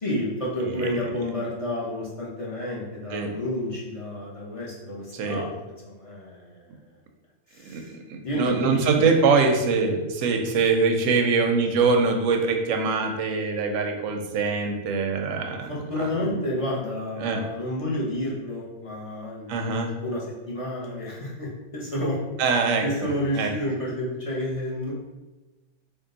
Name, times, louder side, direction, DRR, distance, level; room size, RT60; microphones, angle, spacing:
voice 1, 0.0-6.9 7.5-7.9 8.2-8.8 15.7-19.5 20.0-22.2 22.5-24.9, left 1 dB, 30° left, -6 dB, 0.9 m, -30 dB
voice 2, 0.6-0.9 3.1-3.3 5.1-5.4 7.7-7.8 8.1-15.7 16.0-16.1 17.2-17.4 19.5-19.9 22.4-22.8 23.3-23.5, right 4 dB, 90° right, 4 dB, 1.0 m, -23 dB
3.7 x 2.4 x 3.8 m, 1.1 s
omnidirectional pair, 1.3 m